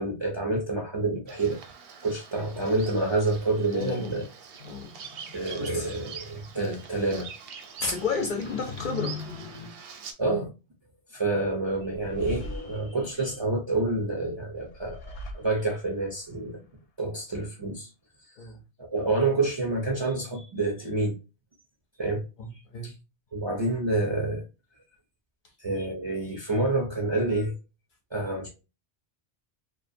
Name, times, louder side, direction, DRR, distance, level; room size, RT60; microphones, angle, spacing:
voice 1, 0.0-1.6 2.0-4.2 5.3-7.3 10.2-10.5 11.1-16.6 17.0-17.9 18.8-21.2 22.0-22.2 22.8-22.9 23.3-24.4 25.6-27.5 28.1-28.5, right 2 dB, 40° right, 0.4 m, -28 dB
Bird vocalization bird call bird song, 1.3-10.1, right 6 dB, 65° right, 0.7 m, -44 dB
voice 2, 3.7-4.1 4.6-5.9 7.8-9.7 18.4-18.6 22.4-22.9, left 4 dB, 60° left, 0.6 m, -32 dB
sound 1, 11.6-13.5 14.6-16.1, left 2 dB, 85° left, 0.9 m, -40 dB
2.4 x 2.2 x 2.5 m
omnidirectional pair, 1.1 m